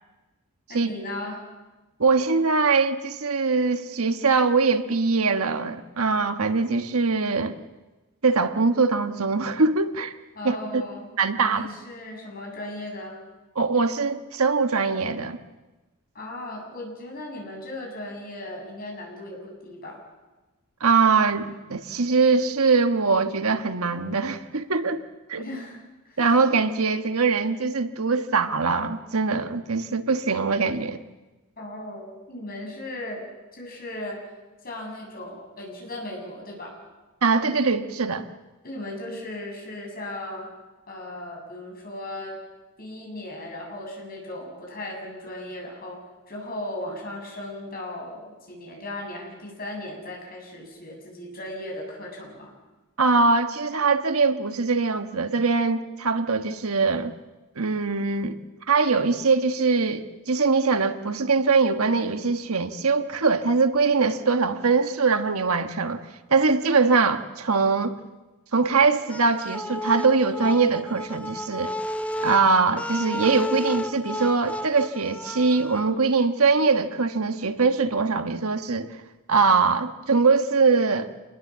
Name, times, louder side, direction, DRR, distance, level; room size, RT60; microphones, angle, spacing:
voice 1, 0.7-1.5 10.4-11.0 11.5-13.2 16.1-20.0 25.3-25.8 26.0-26.2 31.6-33.2 33.5-34.2 34.6-36.7 38.6-40.5 40.9-42.4 42.8-46.0 46.3-52.5, left 1 dB, 45° left, 0 dB, 7.6 m, -37 dB
voice 2, 2.0-7.6 8.2-10.1 10.4-10.8 11.2-11.7 13.5-15.4 20.8-25.0 25.3-25.4 26.2-31.0 37.2-38.3 53.0-57.1 57.6-58.4 58.7-66.0 66.3-68.0 68.5-71.7 72.2-78.9 79.3-81.1, right 4 dB, 80° right, 8 dB, 1.3 m, -22 dB
sound 1, 69.1-75.8, left 1 dB, 5° left, 0.7 m, -32 dB
27.5 x 20.5 x 7.4 m, 1.1 s
head